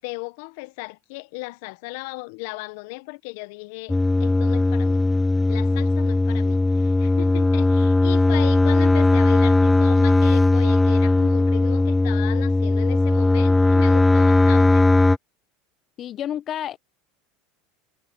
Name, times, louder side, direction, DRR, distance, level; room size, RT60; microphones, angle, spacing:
voice 1, 0.0-5.0 5.5-14.9, left 25 dB, 70° left, 1.4 m, -36 dB
sound 1, 3.9-15.2, left 2 dB, 10° left, 0.6 m, -18 dB
voice 2, 16.0-16.8, left 10 dB, 45° left, 1.1 m, -30 dB
hypercardioid pair, 90°, 0 cm